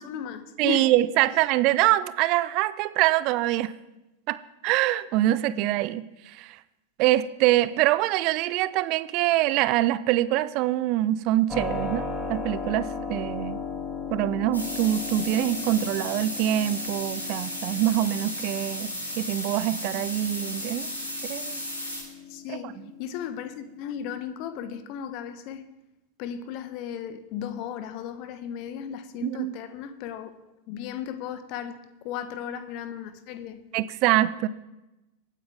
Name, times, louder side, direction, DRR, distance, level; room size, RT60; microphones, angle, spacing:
voice 1, 0.0-0.9 22.3-25.7 26.2-30.4 30.7-33.6, left 8 dB, 45° left, 1.1 m, -35 dB
voice 2, 0.6-3.7 4.3-4.4 4.6-6.1 6.4-6.6 7.0-13.6 14.1-18.9 19.2-20.9 21.3-21.6 22.6-22.7 29.2-29.5 33.7-34.5, right 15 dB, 40° right, 0.6 m, -24 dB
Keyboard (musical), 11.5-24.2, left 4 dB, 15° left, 2.2 m, -37 dB
sound 1, 14.5-22.0, equal, 80° left, 6.2 m, -34 dB
23.5 x 9.3 x 3.5 m
figure-of-eight pair, 90°, 0 cm